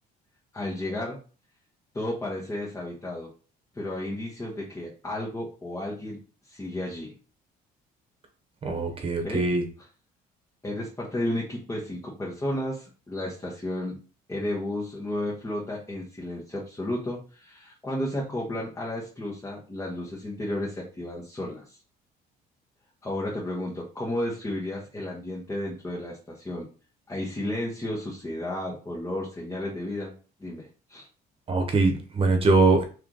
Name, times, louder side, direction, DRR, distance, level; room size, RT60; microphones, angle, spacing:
voice 1, 0.5-1.2 1.9-3.3 3.7-7.1 9.2-9.4 10.6-14.0 14.3-21.8 23.0-26.7 27.1-30.1 30.4-31.1, left 1 dB, 15° left, -5 dB, 1.2 m, -33 dB
voice 2, 8.6-9.6 31.5-32.8, right 3 dB, 35° right, 5 dB, 1.1 m, -22 dB
3.3 x 3.1 x 3.9 m, 0.36 s
cardioid pair, 110°, 17 cm